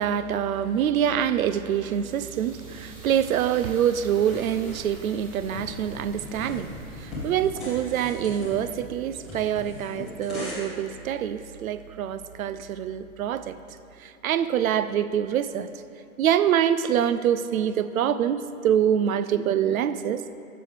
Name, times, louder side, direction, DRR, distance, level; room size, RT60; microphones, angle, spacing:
voice 1, 0.0-6.7 7.0-13.5 14.0-15.7 16.2-20.4, right 9 dB, 70° right, 13 dB, 0.5 m, -25 dB
sound 1, 1.2-11.3, right 1 dB, 25° right, 1.1 m, -51 dB
sound 2, 4.3-10.5, left 2 dB, ahead, 0.8 m, -39 dB
9.5 x 6.9 x 3.3 m, 2.7 s
hypercardioid pair, 170°, 44 cm